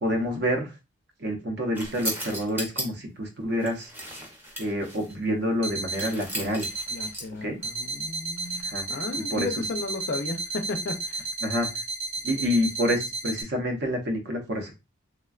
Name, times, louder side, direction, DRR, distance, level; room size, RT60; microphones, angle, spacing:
voice 1, 0.0-0.7 1.2-3.9 4.6-6.7 7.4-7.6 8.6-8.9 9.3-9.5 11.4-11.8 12.2-14.7, equal, 55° right, 4 dB, 0.6 m, -28 dB
sound 1, 1.7-2.8 3.5-5.1 5.9-7.4 8.4-8.6, equal, 10° right, 0.6 m, -36 dB
sound 2, 5.1-5.2 5.6-6.1 6.6-7.1 7.6-13.4, right 3 dB, 80° right, 1.1 m, -33 dB
voice 2, 6.9-11.3, left 3 dB, 50° left, 7 dB, 0.4 m, -34 dB
3.3 x 2.1 x 2.3 m, 0.27 s
head